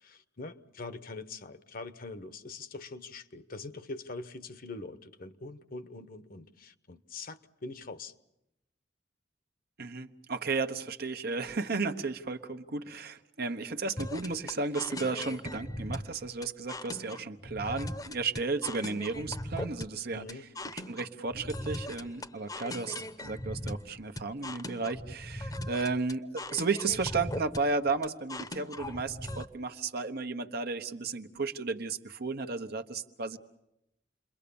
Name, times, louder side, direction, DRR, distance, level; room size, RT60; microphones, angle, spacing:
voice 1, 0.0-8.1 20.1-20.5, left 3 dB, 55° left, 1.1 m, -43 dB
voice 2, 9.8-20.2 20.9-33.4, right 4 dB, 60° right, 1.2 m, -33 dB
sound 1, 14.0-29.4, left 1 dB, 20° left, 1.0 m, -39 dB
29.0 x 22.5 x 7.1 m
head